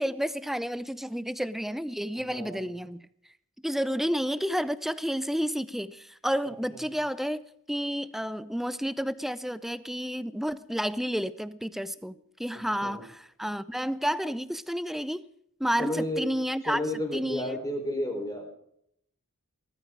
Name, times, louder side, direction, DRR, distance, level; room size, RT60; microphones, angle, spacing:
voice 1, 0.0-3.0 3.6-7.4 7.7-15.2 15.6-16.8 17.1-17.6, equal, ahead, 0.6 m, -31 dB
voice 2, 2.1-2.7 6.7-6.8 12.8-13.0 15.8-16.2 16.6-18.5, left 1 dB, 15° left, 4.7 m, -32 dB
19.5 x 13.5 x 4.7 m
head